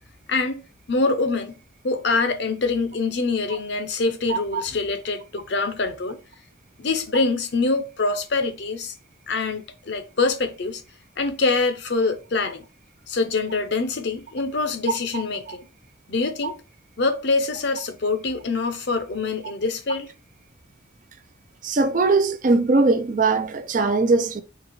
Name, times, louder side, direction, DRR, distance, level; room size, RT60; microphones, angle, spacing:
voice 1, 0.3-0.6 0.9-1.6 1.8-6.2 6.8-8.9 9.3-10.8 11.2-12.6 13.1-15.7 16.1-16.5 17.0-20.1, left 3 dB, 60° left, 0.7 m, -24 dB
voice 2, 4.3-4.6 15.1-15.2 21.6-24.4, right 3 dB, 40° right, 0.4 m, -20 dB
3.9 x 2.8 x 4.2 m
head